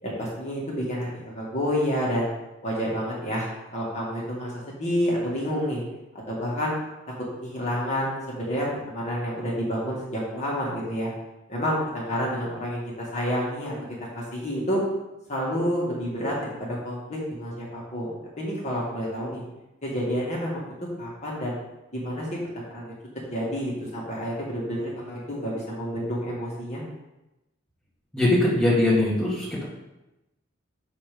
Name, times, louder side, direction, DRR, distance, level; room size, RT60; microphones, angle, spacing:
voice 1, 0.0-2.3 2.6-5.8 6.3-6.7 7.4-11.1 11.5-13.7 14.1-14.8 15.3-16.3 16.6-18.1 18.4-19.4 19.8-20.7 21.0-21.6 21.9-22.3 22.5-22.9 23.3-26.8, equal, 35° left, -4 dB, 2.1 m, -29 dB
voice 2, 28.1-29.6, left 1 dB, 5° left, -8 dB, 1.8 m, -21 dB
6.3 x 5.7 x 5.3 m, 0.96 s
head